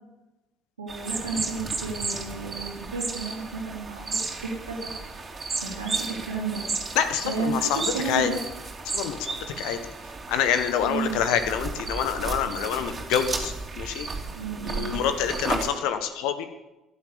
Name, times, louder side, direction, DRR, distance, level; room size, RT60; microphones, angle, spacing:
voice 1, 0.8-4.9 5.6-6.6 7.2-8.4 10.8-11.2 14.4-14.9, right 4 dB, 85° right, -4 dB, 3.2 m, -32 dB
sound 1, 0.9-15.7, right 4 dB, 30° right, 3.0 m, -33 dB
voice 2, 6.9-8.3 8.9-9.8 10.3-14.1 14.5-16.5, left 8 dB, 65° left, 9 dB, 1.4 m, -27 dB
15.0 x 11.5 x 7.0 m, 1.0 s
figure-of-eight pair, 55°, 0 cm